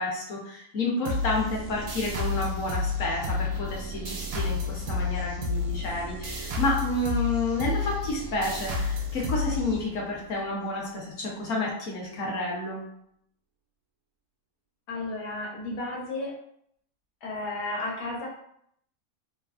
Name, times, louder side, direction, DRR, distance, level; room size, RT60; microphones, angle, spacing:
voice 1, 0.0-12.8, left 2 dB, 60° left, -3 dB, 1.1 m, -30 dB
sound 1, 1.0-10.3, left 3 dB, 80° right, 1.1 m, -31 dB
voice 2, 14.9-16.3 17.2-18.3, left 2 dB, 80° left, -4 dB, 1.4 m, -33 dB
3.2 x 2.1 x 2.4 m, 0.71 s
omnidirectional pair, 1.7 m